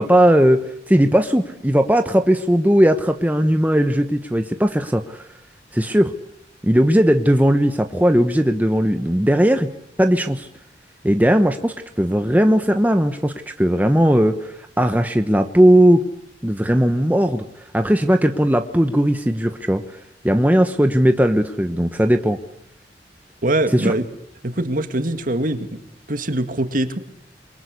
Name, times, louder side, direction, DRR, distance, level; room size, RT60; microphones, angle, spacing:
voice 1, 0.0-5.2 5.7-6.1 6.6-9.7 10.0-10.5 11.0-16.0 16.4-17.4 17.7-19.8 20.2-22.4 23.7-23.9, equal, 10° right, 6 dB, 1.0 m, -17 dB
voice 2, 23.4-24.0 24.4-25.8 26.1-27.0, right 1 dB, 50° right, 9 dB, 2.1 m, -22 dB
27.5 x 23.5 x 8.3 m, 0.73 s
head